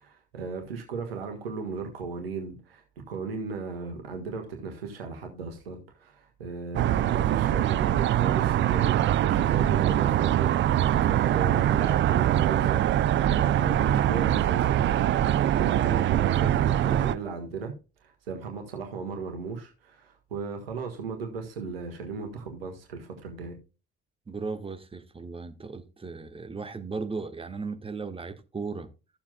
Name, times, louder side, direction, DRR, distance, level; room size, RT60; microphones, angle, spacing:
voice 1, 0.0-17.7 18.0-23.6, right 4 dB, 80° right, 1.5 m, -36 dB
sound 1, 6.7-17.1, right 12 dB, 40° right, 0.5 m, -23 dB
voice 2, 24.3-28.9, right 4 dB, 20° right, 1.4 m, -36 dB
14.0 x 7.2 x 2.3 m
figure-of-eight pair, 55°, 29 cm